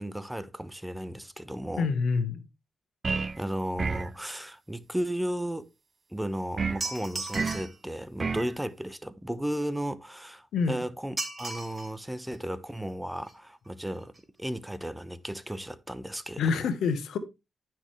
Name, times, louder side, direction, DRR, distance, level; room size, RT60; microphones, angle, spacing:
voice 1, 0.0-1.9 3.4-5.7 6.1-14.1 14.4-16.4, equal, 10° right, 0.9 m, -34 dB
voice 2, 1.8-2.5 10.5-10.8 16.4-17.2, left 5 dB, 80° left, 1.1 m, -27 dB
sound 1, 3.0-3.4 3.8-4.2 6.6-6.9 7.3-7.7 8.2-8.5, right 4 dB, 45° right, 0.4 m, -30 dB
sound 2, 6.8-7.8 11.2-11.9 12.3-12.4 13.2-13.3 13.6-13.7 14.0-14.2 14.5-14.6, right 3 dB, 30° right, 2.3 m, -36 dB
10.0 x 6.0 x 3.2 m
supercardioid pair, 50°, 0 cm